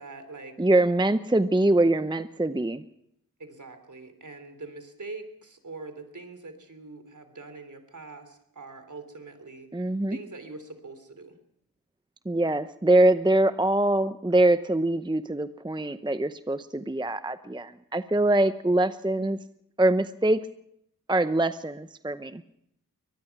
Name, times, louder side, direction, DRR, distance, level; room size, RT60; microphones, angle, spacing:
voice 1, 0.0-0.6 3.4-11.4, right 3 dB, 55° right, 9 dB, 3.3 m, -43 dB
voice 2, 0.6-2.8 9.7-10.2 12.3-19.4 19.8-20.4 21.1-22.4, right 1 dB, 15° right, 12 dB, 0.7 m, -23 dB
23.5 x 19.5 x 6.0 m, 0.76 s
cardioid pair, 45°, 36 cm